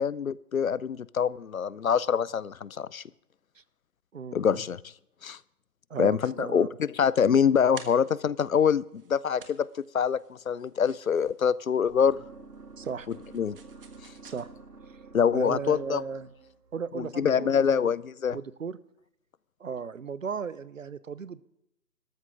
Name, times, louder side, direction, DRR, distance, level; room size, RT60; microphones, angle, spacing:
voice 1, 0.0-3.0 4.3-4.8 5.2-5.4 6.0-8.8 9.1-9.7 9.9-12.2 13.3-13.6 15.1-16.0 16.9-18.4, left 7 dB, 60° left, 21 dB, 0.6 m, -25 dB
voice 2, 4.1-4.6 5.9-6.7 12.8-13.1 14.2-14.5 15.3-16.3 16.7-17.9 18.3-18.8 19.6-21.4, right 6 dB, 55° right, 17 dB, 0.9 m, -35 dB
sound 1, 7.0-14.4, right 5 dB, 35° right, 1.4 m, -52 dB
sound 2, 11.8-17.9, right 3 dB, 80° right, 2.2 m, -50 dB
18.5 x 13.5 x 3.7 m, 0.80 s
figure-of-eight pair, 155°, 47 cm